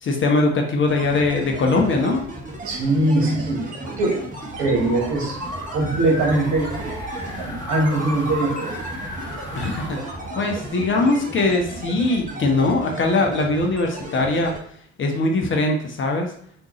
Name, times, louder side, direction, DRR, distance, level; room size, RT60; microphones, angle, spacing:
voice 1, 0.0-2.2 9.5-14.5 15.0-16.3, left 2 dB, 35° left, 2 dB, 0.8 m, -21 dB
sound 1, 0.8-14.6, right 2 dB, 20° right, 1.0 m, -35 dB
voice 2, 2.6-4.2 4.6-5.4 5.7-7.0 7.4-8.8, right 2 dB, 60° right, -1 dB, 1.2 m, -22 dB
sound 2, 4.2-11.3, left 1 dB, 10° left, 1.0 m, -34 dB
3.7 x 2.6 x 3.0 m, 0.62 s
hypercardioid pair, 55°, 35 cm